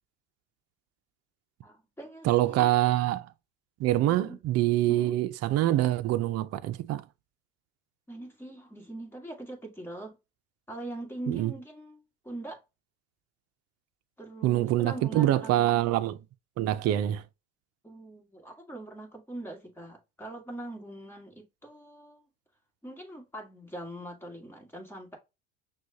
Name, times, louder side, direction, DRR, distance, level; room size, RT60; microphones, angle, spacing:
voice 1, 1.6-2.8 4.2-4.4 4.9-5.2 8.1-10.1 10.7-12.6 14.2-15.8 17.8-22.2 22.8-25.2, right 1 dB, 5° left, 1.7 m, -42 dB
voice 2, 2.2-3.3 3.8-7.0 11.3-11.5 14.4-16.2 16.6-17.2, right 14 dB, 50° right, 0.6 m, -25 dB
6.1 x 2.4 x 2.8 m
supercardioid pair, 100°, 32 cm